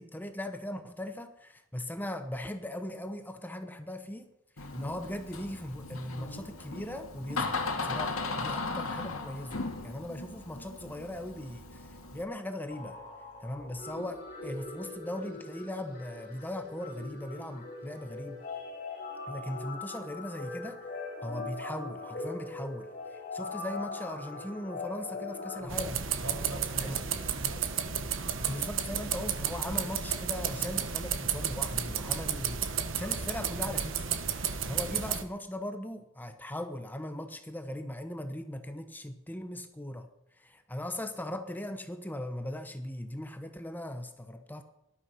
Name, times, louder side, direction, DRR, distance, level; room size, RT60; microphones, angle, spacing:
voice 1, 0.0-4.3 4.6-13.0 13.4-18.4 19.3-20.8 21.2-26.3 26.8-27.0 28.5-34.2 34.6-40.1 40.4-44.6, left 1 dB, 10° left, 8 dB, 0.9 m, -39 dB
Door, 4.6-12.2, left 3 dB, 70° left, 2.2 m, -37 dB
sound 1, 12.7-25.6, left 3 dB, 40° left, 6.6 m, -41 dB
sound 2, 25.7-35.2, right 7 dB, 60° right, 1.3 m, -32 dB
voice 2, 26.2-27.7 28.3-28.6, right 1 dB, 80° right, -1 dB, 7.1 m, -43 dB
18.5 x 12.5 x 5.6 m, 0.85 s
head